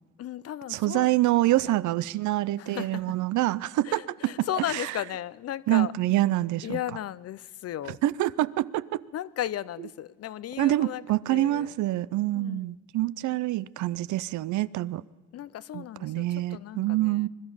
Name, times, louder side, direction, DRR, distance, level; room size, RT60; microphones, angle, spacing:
voice 1, 0.2-1.1 1.4-1.7 2.6-3.2 3.8-5.9 6.6-8.0 9.1-11.0 11.3-11.7 12.3-12.6 15.3-17.3, left 12 dB, 55° left, 0.5 m, -35 dB
voice 2, 0.7-4.9 5.7-6.8 8.0-9.0 10.6-15.0 15.7-17.3, right 16 dB, 75° right, 0.5 m, -26 dB
21.5 x 12.0 x 5.5 m
cardioid pair, 90°, 30 cm